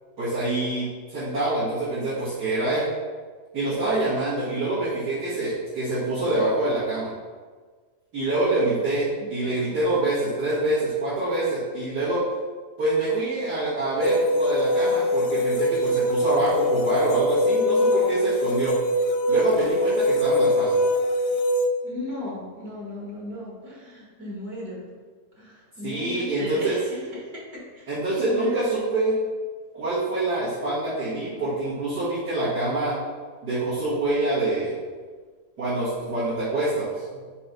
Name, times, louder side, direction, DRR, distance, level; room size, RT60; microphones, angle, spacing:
voice 1, 0.2-2.9 3.5-7.1 8.1-12.2 12.8-18.7 19.3-20.8 25.8-26.8 27.9-29.1 29.7-33.0 33.4-34.7 35.6-37.4, right 2 dB, 90° right, -13 dB, 2.9 m, -25 dB
voice 2, 9.2-9.5 21.8-24.9 25.4-28.6, left 1 dB, 65° right, -5 dB, 2.6 m, -37 dB
sound 1, 14.0-21.7, left 1 dB, 65° left, 0.7 m, -22 dB
5.8 x 4.8 x 5.4 m, 1.5 s
omnidirectional pair, 1.7 m